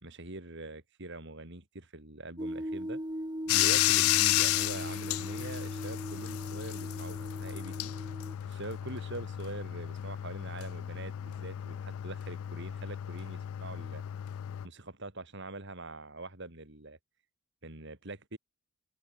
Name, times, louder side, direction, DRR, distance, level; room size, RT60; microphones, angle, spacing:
voice 1, 0.0-3.0 3.5-7.9 8.4-14.0 14.6-17.0 17.6-18.4, right 2 dB, 60° right, 4.4 m, -44 dB
sound 1, 2.4-8.4, equal, 20° right, 3.3 m, -39 dB
Bathtub (filling or washing), 3.5-14.7, left 14 dB, 90° left, 0.3 m, -32 dB
head